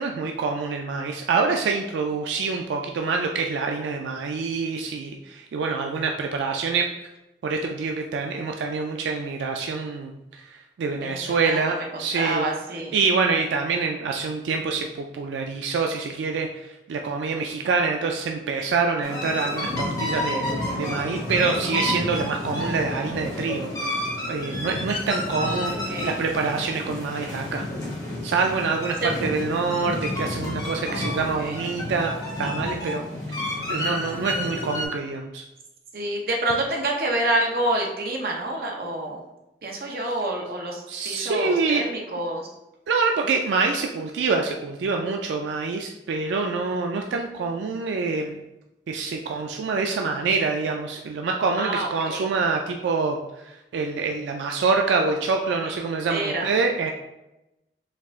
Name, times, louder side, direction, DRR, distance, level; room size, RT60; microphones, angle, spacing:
voice 1, 0.0-6.9 7.4-12.4 12.9-20.4 20.7-25.7 26.0-27.7 28.2-32.1 32.4-33.0 33.3-33.4 33.7-35.4 40.0-40.2 40.9-41.9 42.9-48.4 48.9-56.9, right 4 dB, 90° right, 3 dB, 0.3 m, -26 dB
voice 2, 11.0-12.9 25.4-26.2 29.0-29.1 30.8-31.6 35.9-39.2 39.6-42.5 51.6-52.2 56.1-56.5, right 1 dB, 55° right, 0 dB, 0.7 m, -28 dB
sound 1, 19.0-34.9, left 1 dB, 20° left, 0.8 m, -30 dB
4.5 x 2.4 x 3.5 m, 0.95 s
head